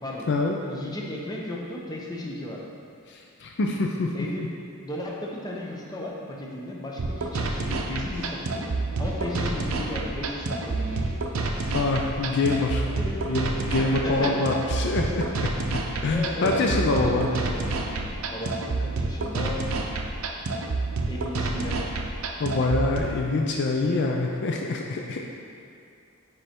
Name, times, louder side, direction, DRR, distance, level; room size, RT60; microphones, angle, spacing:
voice 1, 0.6-2.7 4.1-4.4 4.7-8.7 9.0-11.0 13.0-13.2 13.8-14.8 16.1-17.9 18.3-19.6 21.1-21.8, left 1 dB, 20° left, -3 dB, 0.7 m, -35 dB
voice 2, 3.1-4.1 4.4-4.5 11.7-12.9 13.3-15.3 16.0-17.3 22.4-25.3, left 3 dB, 55° left, 0 dB, 0.4 m, -25 dB
sound 1, 7.0-23.0, right 3 dB, 80° right, 0.6 m, -28 dB
sound 2, 8.0-19.5, equal, 10° right, 1.4 m, -45 dB
5.3 x 4.7 x 4.4 m, 2.4 s
head